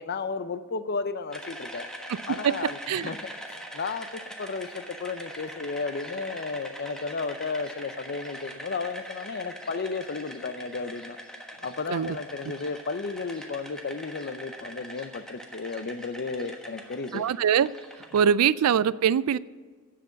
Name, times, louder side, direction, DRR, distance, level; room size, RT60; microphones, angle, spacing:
voice 1, 0.0-1.9 2.3-3.3 3.7-11.2 11.6-17.3 18.1-18.2, left 4 dB, 50° left, 12 dB, 0.6 m, -33 dB
sound 1, 1.3-18.2, equal, 5° left, 1.3 m, -42 dB
voice 2, 17.1-17.7 18.1-19.4, right 8 dB, 75° right, 19 dB, 0.3 m, -22 dB
10.5 x 7.7 x 6.9 m, 1.4 s
head